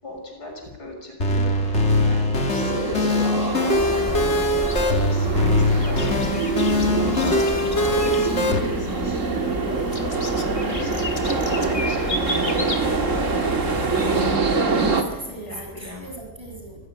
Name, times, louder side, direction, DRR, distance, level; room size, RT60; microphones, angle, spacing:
voice 1, 0.0-7.4 7.8-9.1 9.5-10.2 10.7-11.0 11.4-13.5 15.5-16.0, left 2 dB, 65° left, 2 dB, 6.8 m, -39 dB
sound 1, 1.2-8.6, left 1 dB, 40° left, 2.7 m, -22 dB
sound 2, 1.5-15.0, right 4 dB, 45° right, 2.5 m, -25 dB
sound 3, 3.7-14.4, left 2 dB, 20° left, 1.6 m, -32 dB
voice 2, 10.6-11.0 14.6-16.9, right 1 dB, 15° right, 0 dB, 7.1 m, -37 dB
25.5 x 16.5 x 9.7 m, 1.1 s
omnidirectional pair, 1.9 m